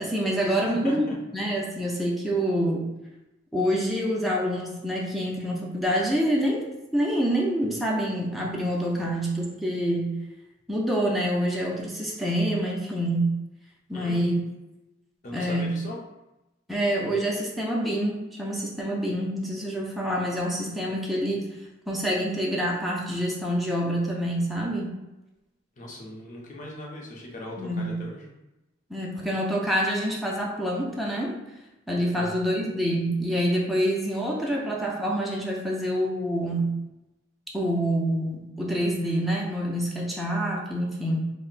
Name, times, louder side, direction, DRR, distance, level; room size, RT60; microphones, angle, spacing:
voice 1, 0.0-1.1 1.3-2.9 3.5-6.7 6.9-10.2 10.7-13.4 13.9-14.4 15.3-15.7 16.7-21.5 21.9-24.9 27.6-27.9 28.9-31.4 31.9-36.8 37.5-41.2, equal, ahead, -3 dB, 0.4 m, -26 dB
voice 2, 0.5-1.2 13.9-14.2 15.2-16.0 20.0-20.1 25.8-28.3 32.1-32.4, left 1 dB, 40° left, -2 dB, 0.6 m, -39 dB
2.5 x 2.1 x 3.8 m, 0.98 s
head